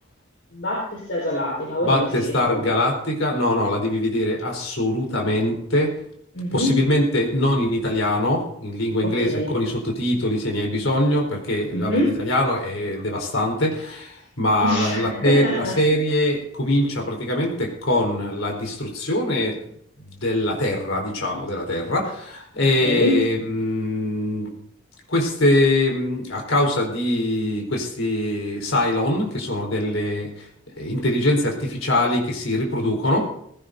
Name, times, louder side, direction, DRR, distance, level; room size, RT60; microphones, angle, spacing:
voice 1, 0.5-2.6 6.3-6.8 9.0-9.5 11.7-12.1 14.6-15.7 22.8-23.2, left 1 dB, 65° left, -4 dB, 4.4 m, -25 dB
voice 2, 1.8-5.9 6.5-19.6 20.0-24.5 25.1-30.5 30.8-33.3, left 1 dB, 80° left, 0 dB, 4.1 m, -23 dB
19.0 x 17.0 x 2.7 m, 0.68 s
head